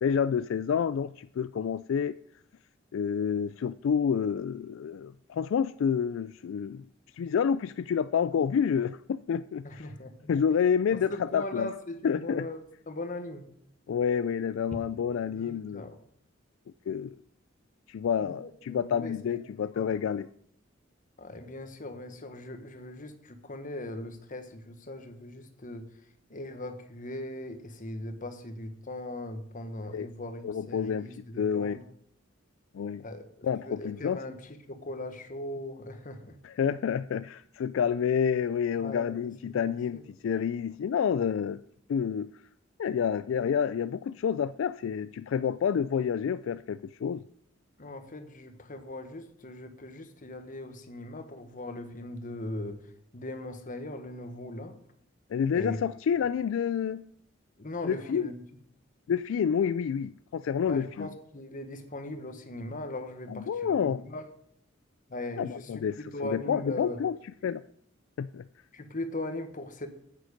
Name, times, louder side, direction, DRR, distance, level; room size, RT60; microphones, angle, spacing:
voice 1, 0.0-2.2 2.9-6.8 7.2-9.9 10.3-11.7 12.0-12.5 13.9-15.9 16.9-17.2 17.9-20.3 29.9-30.1 30.4-31.1 31.4-31.8 32.7-33.0 33.4-34.2 36.4-41.6 41.9-42.3 42.8-47.2 55.3-57.1 57.8-58.3 59.1-61.1 63.3-64.0 65.4-67.2 67.4-67.6 68.2-68.4, left 7 dB, 75° left, 0.3 m, -29 dB
voice 2, 9.6-10.3 10.9-13.5 15.3-16.0 18.2-19.1 19.7-19.9 21.2-25.9 26.3-31.8 33.0-36.4 38.8-40.0 47.8-54.8 55.5-55.8 57.6-58.3 60.7-64.2 65.1-67.0 68.7-69.9, left 1 dB, 40° left, 1.3 m, -39 dB
9.5 x 9.1 x 5.1 m
head